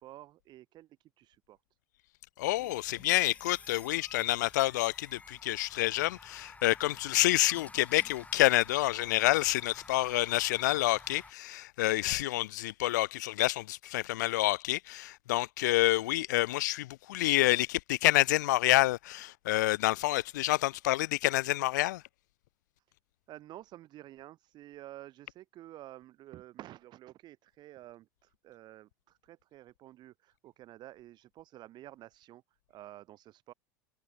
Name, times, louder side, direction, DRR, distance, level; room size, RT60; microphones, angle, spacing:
voice 1, 0.0-1.6 23.3-32.4 32.7-33.5, right 14 dB, 45° right, 7.5 m, -50 dB
voice 2, 2.4-22.0, left 17 dB, 70° left, 0.4 m, -28 dB
sound 1, 2.4-11.3, left 3 dB, 15° left, 4.0 m, -52 dB
hypercardioid pair, 80°, 10 cm